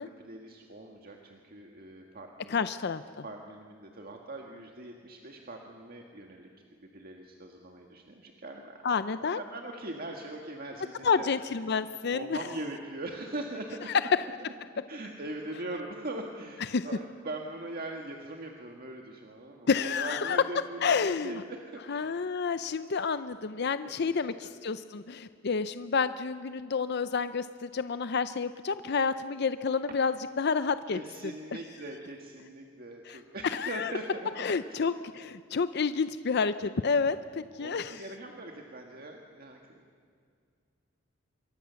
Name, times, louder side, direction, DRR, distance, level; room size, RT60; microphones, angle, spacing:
voice 1, 0.0-2.7 3.2-6.5 6.8-8.8 9.2-11.3 12.1-13.9 14.9-22.2 22.7-22.8 24.0-24.5 24.9-25.0 30.9-34.9 37.6-39.8, right 2 dB, 50° right, 2 dB, 1.8 m, -41 dB
voice 2, 2.5-3.0 8.8-9.4 11.0-12.4 13.9-14.0 16.7-16.9 19.7-20.4 20.8-21.4 21.9-31.0 33.1-33.9 34.4-38.0, left 5 dB, 55° left, 12 dB, 0.6 m, -29 dB
26.5 x 23.5 x 7.0 m, 2.2 s
head